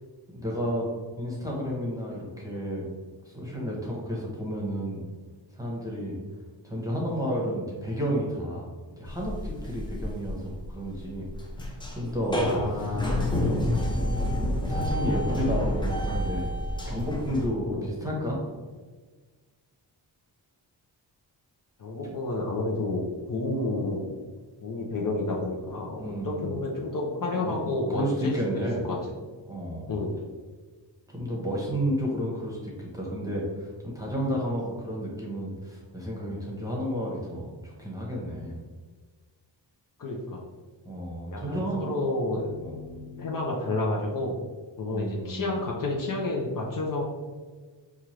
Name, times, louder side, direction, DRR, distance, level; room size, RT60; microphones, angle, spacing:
voice 1, 0.3-0.9 1.2-2.9 3.3-5.1 5.5-6.2 6.6-8.6 9.0-11.3 11.6-12.4 12.7-13.1 13.4-13.7 14.7-16.5 16.8-18.4 26.0-26.5 27.4-27.5 27.9-28.9 29.5-29.9 31.1-38.6 40.8-41.9 42.6-42.8 44.9-45.6, equal, 10° right, -4 dB, 1.1 m, -31 dB
sound 1, 9.0-17.5, left 1 dB, 10° left, 0.5 m, -29 dB
voice 2, 12.4-13.2 17.6-17.9 21.8-24.1 24.6-29.1 29.9-30.1 40.0-40.4 41.3-44.4 44.8-47.0, left 2 dB, 50° left, -2 dB, 0.7 m, -30 dB
4.4 x 2.4 x 3.1 m, 1.4 s
wide cardioid pair, 90°, 44 cm